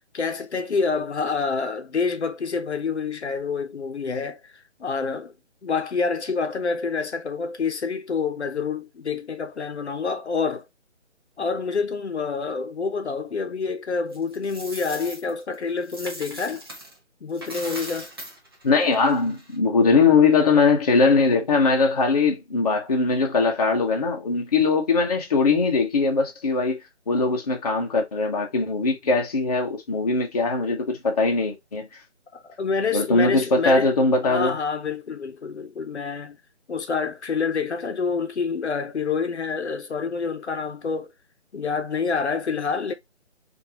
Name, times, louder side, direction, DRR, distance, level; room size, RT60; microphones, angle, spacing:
voice 1, 0.1-4.5 4.8-5.3 5.6-10.6 11.4-16.6 17.2-18.1 32.3-33.9 34.2-36.4 36.7-41.1 41.5-42.9, left 5 dB, 65° left, 0.9 m, -27 dB
Coin (dropping), 14.1-17.0 17.3-19.6, right 1 dB, 20° right, 0.7 m, -39 dB
voice 2, 18.6-26.8 27.1-31.9 32.9-34.5, left 4 dB, 35° left, 0.8 m, -21 dB
4.3 x 2.6 x 2.7 m
figure-of-eight pair, 160°, 36 cm